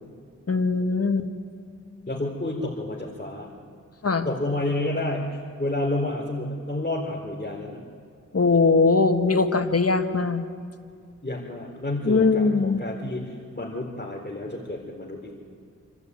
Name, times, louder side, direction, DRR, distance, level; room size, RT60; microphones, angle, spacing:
voice 1, 0.5-1.3 4.0-4.3 8.3-10.4 12.0-12.8, left 4 dB, 50° left, 7 dB, 1.7 m, -21 dB
voice 2, 2.1-3.5 4.2-7.8 11.2-15.3, left 1 dB, 30° left, -4 dB, 4.1 m, -30 dB
27.5 x 12.0 x 9.6 m, 2.2 s
cardioid pair, 40°, 32 cm